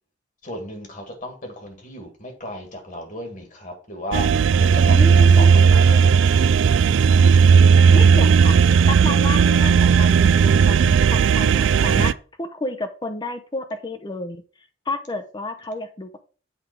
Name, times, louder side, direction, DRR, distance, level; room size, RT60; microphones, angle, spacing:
voice 1, 0.4-6.5, left 1 dB, 45° left, 4 dB, 2.0 m, -35 dB
sound 1, 4.1-12.1, right 6 dB, 70° right, 0.3 m, -15 dB
voice 2, 4.8-5.5 7.9-8.6 8.9-12.1 12.4-14.4 14.9-16.1, left 2 dB, 25° left, 8 dB, 0.7 m, -31 dB
8.0 x 3.6 x 5.9 m, 0.38 s
head